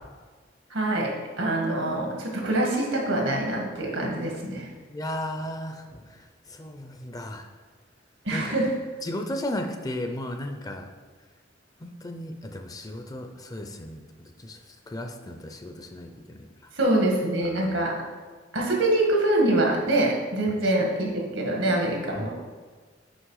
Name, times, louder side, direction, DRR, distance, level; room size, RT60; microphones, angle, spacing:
voice 1, 0.7-4.7 8.3-8.7 16.7-17.9 18.5-22.3, right 1 dB, 85° right, -1 dB, 1.7 m, -25 dB
voice 2, 4.9-7.5 8.3-8.6 9.0-10.9 11.8-14.6 14.9-16.5 17.4-17.7 22.2-22.3, left 1 dB, 20° left, 5 dB, 0.5 m, -35 dB
6.3 x 5.1 x 4.8 m, 1.4 s
head